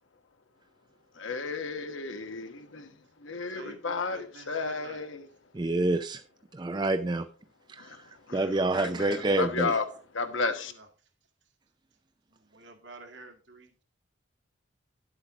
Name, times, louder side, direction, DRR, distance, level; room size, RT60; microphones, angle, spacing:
voice 1, 1.2-2.9 3.2-5.3 7.8-8.0 8.3-8.4 8.7-9.8 10.1-10.7, left 4 dB, 85° left, 1.3 m, -33 dB
voice 2, 3.5-5.1 10.6-10.9 12.3-13.8, right 2 dB, 70° right, 2.0 m, -49 dB
voice 3, 5.5-6.2 6.5-7.3 7.7-9.8, right 2 dB, 20° right, 0.4 m, -28 dB
11.0 x 8.0 x 3.6 m
head